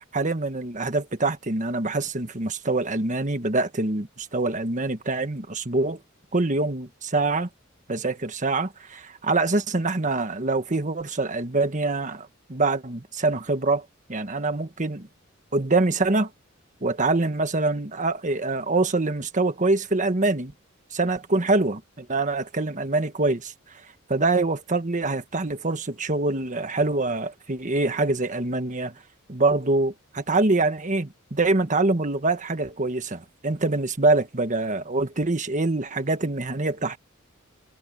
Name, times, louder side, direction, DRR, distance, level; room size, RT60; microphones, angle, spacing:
voice 1, 0.1-6.0 6.3-7.5 7.9-15.1 15.5-16.3 16.8-20.5 20.9-23.5 24.1-28.9 29.3-37.0, right 2 dB, 40° right, 1.5 m, -25 dB
head